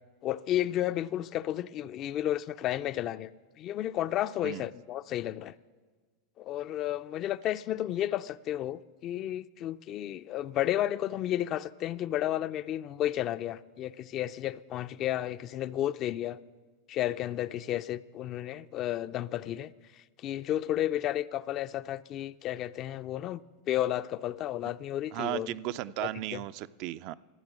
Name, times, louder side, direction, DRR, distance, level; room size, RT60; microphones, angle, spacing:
voice 1, 0.2-3.3 3.6-5.5 6.4-16.4 16.9-19.7 20.2-23.4 23.7-25.8 26.3-26.4, left 12 dB, 45° left, 0.3 m, -32 dB
voice 2, 25.1-27.1, right 15 dB, 55° right, 0.3 m, -35 dB
14.0 x 8.0 x 6.1 m
hypercardioid pair, 115°, 0 cm